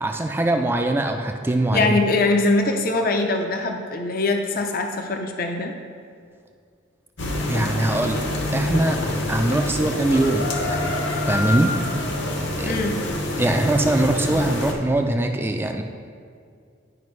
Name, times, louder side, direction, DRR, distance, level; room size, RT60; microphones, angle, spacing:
voice 1, 0.0-2.0 7.5-8.2 8.5-9.0 9.3-10.9 11.2-11.8 12.6-12.7 13.4-15.8, right 1 dB, 10° right, 4 dB, 0.4 m, -22 dB
voice 2, 1.7-5.7 12.6-13.0, left 2 dB, 45° left, 4 dB, 0.5 m, -22 dB
sound 1, 7.2-14.7, left 1 dB, 65° left, 0.9 m, -26 dB
11.0 x 5.1 x 3.2 m, 2.2 s
head